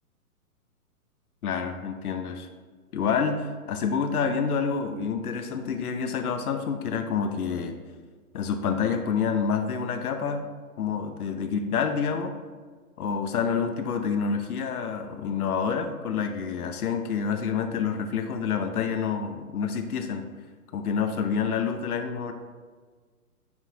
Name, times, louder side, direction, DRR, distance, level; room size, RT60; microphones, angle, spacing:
voice 1, 1.4-2.5 2.9-7.8 8.3-10.4 10.8-12.3 13.0-20.3 20.7-22.3, left 6 dB, 75° left, 7 dB, 0.8 m, -28 dB
9.5 x 4.5 x 2.9 m, 1.5 s
hypercardioid pair, 125°, 45 cm